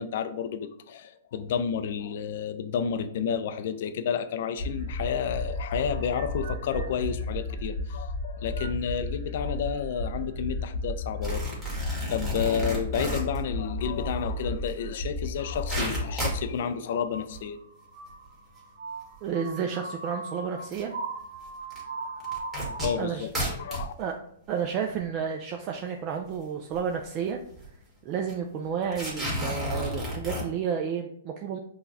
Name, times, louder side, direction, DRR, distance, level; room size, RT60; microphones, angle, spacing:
voice 1, 0.0-11.4 12.1-17.6 22.8-23.9, left 7 dB, 60° left, 10 dB, 0.4 m, -31 dB
sound 1, 4.6-16.4 16.9-22.9, left 1 dB, 70° right, 0.9 m, -34 dB
sound 2, 11.2-13.4 14.7-14.8 15.1-15.2 15.4-16.5 17.2-17.5 18.1-18.2 19.3-19.4 20.7-20.8 21.7-21.8 22.2-23.9 24.6-24.7 24.9-25.0 26.7-26.9 27.2-27.3 27.5-27.7 28.3-28.4 28.9-30.4, equal, 15° right, 1.5 m, -32 dB
voice 2, 19.2-20.9 23.0-23.3 24.0-24.2 24.5-27.4 28.0-31.6, right 7 dB, 40° right, 3 dB, 0.4 m, -31 dB
5.5 x 2.3 x 2.7 m, 0.68 s
hypercardioid pair, 120°, 0 cm